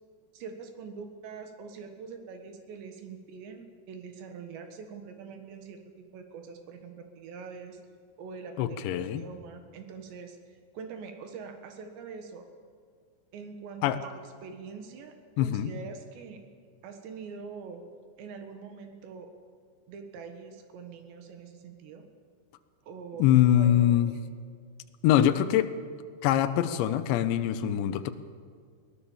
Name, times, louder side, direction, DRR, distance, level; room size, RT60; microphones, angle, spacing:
voice 1, 0.3-7.8 8.2-12.4 13.3-16.4 16.8-17.8 18.2-19.3 19.9-22.1 22.8-24.0, right 5 dB, 75° right, 6 dB, 3.7 m, -44 dB
voice 2, 8.6-9.2 13.8-14.0 15.4-15.7 23.2-24.1 25.0-25.7 26.2-28.1, left 11 dB, 80° left, 9 dB, 3.1 m, -23 dB
23.0 x 17.5 x 7.2 m, 2.1 s
omnidirectional pair, 5.2 m